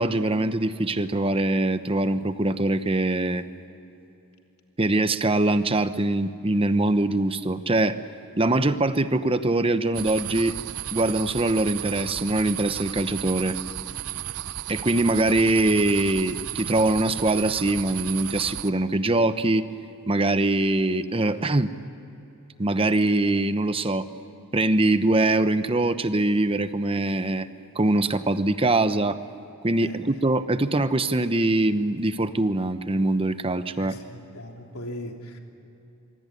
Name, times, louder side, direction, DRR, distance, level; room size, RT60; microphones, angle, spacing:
voice 1, 0.0-3.4 4.8-8.0 8.4-10.5 10.9-13.6 14.7-19.7 20.1-21.7 22.6-24.1 24.5-27.5 27.7-29.2 29.6-34.0, right 2 dB, 25° right, 11 dB, 0.9 m, -23 dB
sound 1, 9.9-18.7, right 12 dB, 90° right, 0.6 m, -34 dB
voice 2, 33.8-35.4, left 1 dB, 85° left, 2 dB, 3.4 m, -39 dB
24.5 x 24.0 x 9.9 m, 2.9 s
head